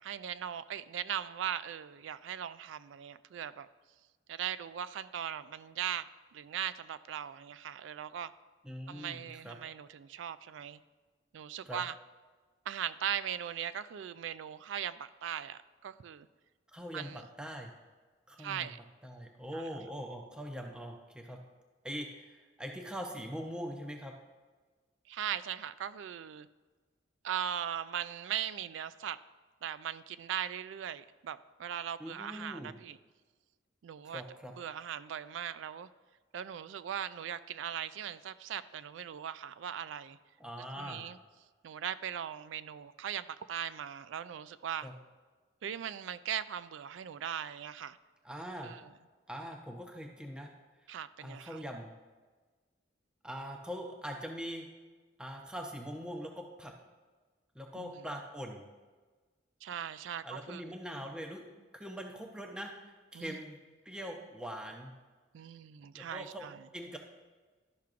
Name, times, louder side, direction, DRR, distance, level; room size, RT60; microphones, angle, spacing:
voice 1, 0.0-3.7 4.3-6.1 6.3-8.3 8.9-10.8 11.3-11.9 12.7-16.3 16.9-17.2 18.4-18.8 25.1-26.5 27.2-29.2 29.6-33.0 33.8-34.2 34.6-35.9 36.3-40.2 40.8-41.2 41.6-44.9 45.6-48.0 48.6-48.8 50.9-51.6 57.8-57.9 59.6-60.6 63.1-63.4 65.3-66.6, right 9 dB, 85° right, 14 dB, 0.3 m, -39 dB
voice 2, 8.6-9.6 11.6-11.8 16.7-17.7 18.3-18.7 19.0-21.4 21.8-24.1 32.0-32.8 34.0-34.5 40.4-41.1 44.8-44.9 48.2-48.7 49.3-50.5 50.9-51.9 53.2-54.7 55.2-56.7 57.5-58.7 60.2-61.5 61.7-63.6 63.8-64.9 65.9-67.0, equal, 5° right, 1 dB, 0.6 m, -42 dB
12.0 x 5.7 x 2.5 m, 1.4 s
head